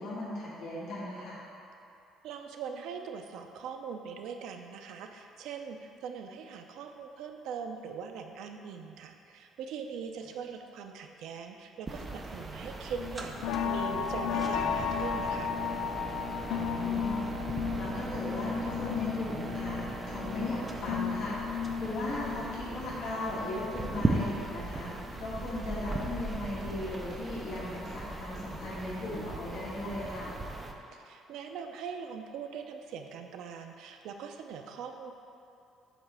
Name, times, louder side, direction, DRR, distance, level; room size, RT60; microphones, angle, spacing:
voice 1, 0.0-1.4 16.5-21.4 21.8-24.9 25.2-30.3, left 1 dB, 55° left, -7 dB, 1.5 m, -37 dB
voice 2, 2.2-13.4 13.7-15.5 30.9-35.1, right 6 dB, 70° right, 5 dB, 0.5 m, -41 dB
sound 1, 11.9-30.7, right 2 dB, 15° right, 0.5 m, -38 dB
sound 2, 13.0-25.1 25.5-27.1 27.5-27.8 28.1-28.2, left 7 dB, 85° left, 0.4 m, -35 dB
8.0 x 3.2 x 6.1 m, 2.8 s
cardioid pair, 160°, 0 cm